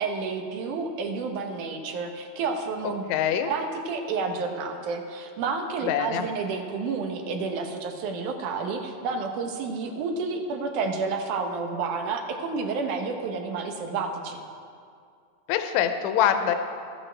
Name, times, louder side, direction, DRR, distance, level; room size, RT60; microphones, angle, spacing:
voice 1, 0.0-3.0 3.5-14.4, right 4 dB, 80° right, 4 dB, 2.4 m, -30 dB
voice 2, 3.1-3.5 5.9-6.2 15.5-16.5, left 9 dB, 80° left, 7 dB, 1.9 m, -24 dB
13.5 x 12.5 x 3.3 m, 2.3 s
omnidirectional pair, 3.5 m